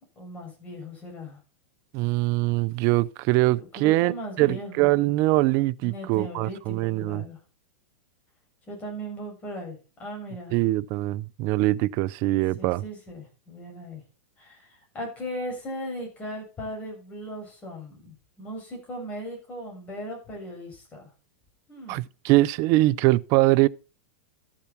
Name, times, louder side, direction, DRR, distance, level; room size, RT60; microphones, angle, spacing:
voice 1, 0.2-1.4 3.6-4.9 5.8-7.4 8.7-10.5 12.6-14.0 14.4-21.1 21.7-22.0, equal, 20° left, 7.3 m, -38 dB
voice 2, 1.9-4.1 4.4-7.2 10.5-12.8 21.9-23.7, right 18 dB, 40° right, 0.5 m, -23 dB
13.0 x 7.3 x 4.4 m
supercardioid pair, 140°, 7 cm